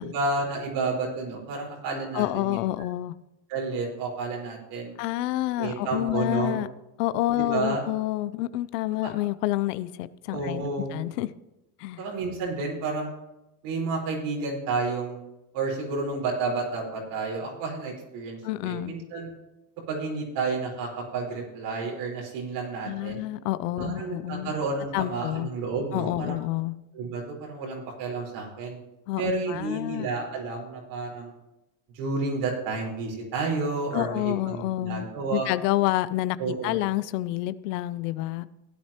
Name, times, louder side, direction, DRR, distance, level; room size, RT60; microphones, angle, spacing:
voice 1, 0.0-2.6 3.5-5.0 5.6-6.5 7.4-7.8 9.0-9.1 10.3-10.9 12.0-13.1 13.6-15.2 15.5-19.3 19.9-23.2 23.8-26.4 26.9-28.8 29.2-31.3 31.9-35.5 36.4-36.8, right 3 dB, 80° right, -2 dB, 4.6 m, -31 dB
voice 2, 2.1-3.1 5.0-6.7 7.0-11.3 11.8-12.0 18.4-19.0 22.8-24.5 24.9-25.5 25.9-26.7 29.1-30.1 33.9-35.0 35.3-36.4 36.6-38.5, left 16 dB, 85° left, 16 dB, 0.6 m, -28 dB
16.5 x 9.9 x 2.9 m, 0.95 s
supercardioid pair, 105°, 47 cm